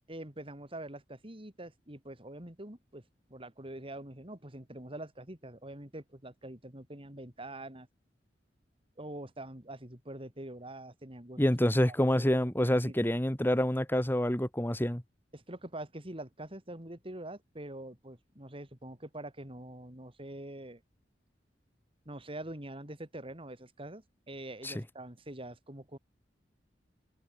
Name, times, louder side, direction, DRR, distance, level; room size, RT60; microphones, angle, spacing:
voice 1, 0.1-3.0 3.3-7.9 9.0-11.4 11.9-12.3 12.6-13.1 15.3-20.8 22.1-26.0, right 1 dB, 30° right, 4.2 m, -45 dB
voice 2, 11.4-15.0 24.6-24.7, equal, 10° left, 1.9 m, -27 dB
head